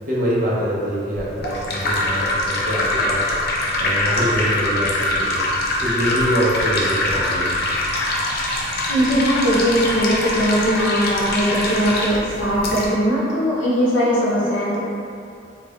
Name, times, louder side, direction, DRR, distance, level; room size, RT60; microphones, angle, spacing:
voice 1, 0.1-5.4 5.8-7.7, equal, 45° right, -7 dB, 0.7 m, -24 dB
sound 1, 1.1-12.9, left 1 dB, 55° left, 0.4 m, -23 dB
voice 2, 8.9-14.8, equal, 75° left, -7 dB, 0.8 m, -20 dB
3.2 x 2.2 x 3.1 m, 2.5 s
head